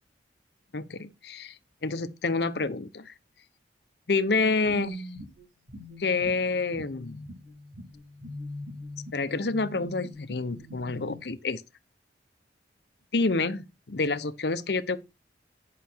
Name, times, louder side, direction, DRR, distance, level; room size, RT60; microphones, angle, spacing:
voice 1, 0.7-3.1 4.1-5.1 6.0-7.2 9.1-11.6 13.1-15.0, left 3 dB, 65° left, 0.8 m, -28 dB
sound 1, 4.3-11.2, left 1 dB, 85° right, 3.8 m, -42 dB
10.5 x 5.9 x 4.5 m
head